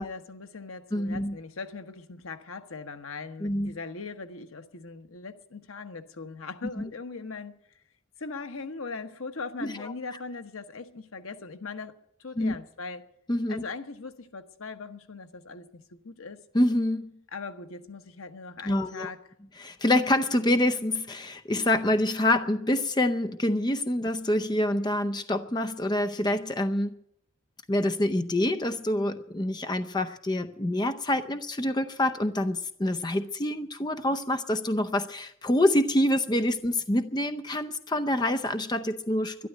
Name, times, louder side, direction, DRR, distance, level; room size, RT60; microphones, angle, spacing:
voice 1, 0.0-7.6 8.2-11.9 12.2-13.1 13.5-16.4 17.3-19.2, left 4 dB, 90° left, 1.2 m, -40 dB
voice 2, 0.9-1.4 3.4-3.8 9.6-9.9 12.4-12.6 13.3-13.6 16.5-17.1 18.6-19.1 19.6-27.0 27.7-39.5, left 1 dB, 20° left, 0.6 m, -26 dB
12.5 x 11.5 x 9.1 m
head